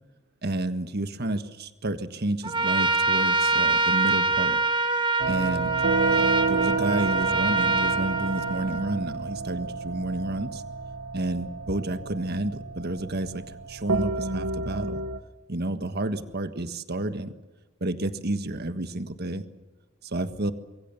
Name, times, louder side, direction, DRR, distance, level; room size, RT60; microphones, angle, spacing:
voice 1, 0.4-4.6 5.3-5.7 6.1-10.6 11.1-15.0 15.5-17.3 17.8-19.4 20.0-20.5, right 1 dB, 50° right, 10 dB, 1.6 m, -30 dB
Trumpet, 2.4-9.0, right 3 dB, 25° right, 1.6 m, -25 dB
sound 1, 5.2-15.2, right 4 dB, 85° right, 1.6 m, -30 dB
25.5 x 22.5 x 7.0 m, 1.2 s
head